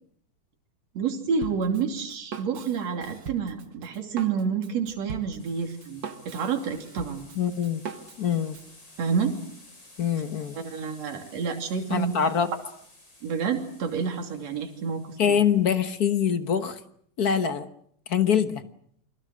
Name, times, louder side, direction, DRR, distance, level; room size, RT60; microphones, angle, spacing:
voice 1, 0.9-7.3 9.0-9.4 10.5-12.1 13.2-15.4, right 6 dB, 65° right, 4 dB, 4.0 m, -29 dB
Drum kit, 1.4-8.7, right 5 dB, 45° right, 1.9 m, -41 dB
sound 1, 5.4-16.5, left 2 dB, 35° left, 7.8 m, -54 dB
voice 2, 7.4-7.8 8.2-8.6 10.0-10.6 11.9-12.5 15.2-16.8 17.2-17.7 18.1-18.6, left 8 dB, 55° left, 10 dB, 1.1 m, -24 dB
29.0 x 24.0 x 6.5 m, 0.63 s
omnidirectional pair, 3.3 m